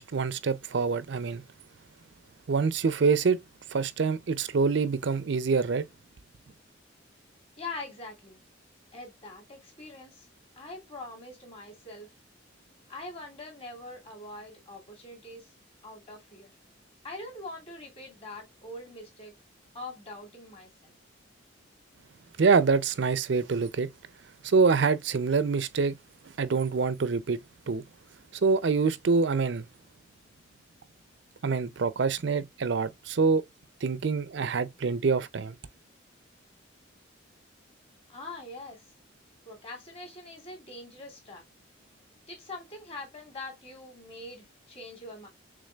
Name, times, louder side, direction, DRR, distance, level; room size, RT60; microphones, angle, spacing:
voice 1, 0.0-1.4 2.5-3.4 3.7-5.9 22.4-23.9 24.4-25.9 26.4-27.4 27.7-27.8 28.4-29.7 31.4-33.4 33.8-35.5, right 4 dB, 60° right, 0.5 m, -25 dB
voice 2, 7.6-8.4 8.9-10.3 10.6-12.1 12.9-15.5 15.8-16.6 17.0-19.3 19.7-20.9 38.1-38.8 39.4-41.4 42.3-45.3, left 2 dB, 30° left, 2.4 m, -43 dB
6.6 x 3.5 x 2.3 m
head